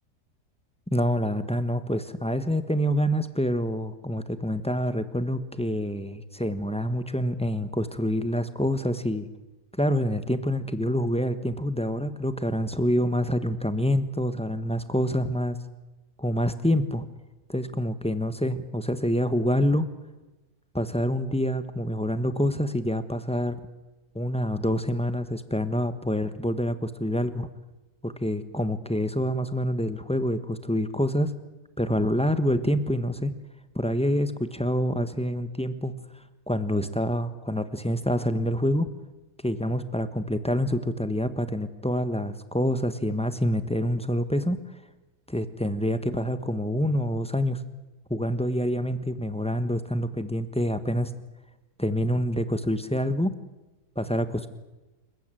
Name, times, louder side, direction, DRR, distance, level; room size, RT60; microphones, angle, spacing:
voice 1, 0.9-9.3 9.8-15.6 16.2-17.1 17.5-19.9 20.7-23.6 24.1-27.5 28.0-31.3 31.8-33.3 33.7-35.9 36.5-38.9 39.4-44.6 45.3-47.6 48.1-51.1 51.8-53.3 53.9-54.5, equal, 5° left, 11 dB, 1.0 m, -26 dB
27.0 x 15.0 x 9.1 m, 1.1 s
omnidirectional pair, 1.7 m